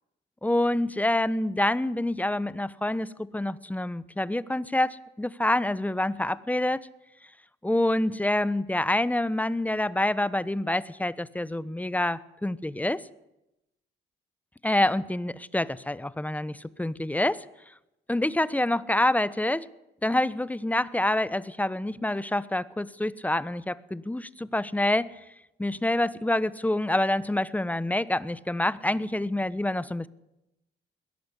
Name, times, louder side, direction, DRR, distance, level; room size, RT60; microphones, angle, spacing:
voice 1, 0.4-6.8 7.6-13.0 14.6-17.4 18.1-19.7 20.0-25.2 25.6-30.1, left 1 dB, 10° left, 18 dB, 1.0 m, -27 dB
21.5 x 17.5 x 8.3 m, 0.90 s
cardioid pair, 90°, 20 cm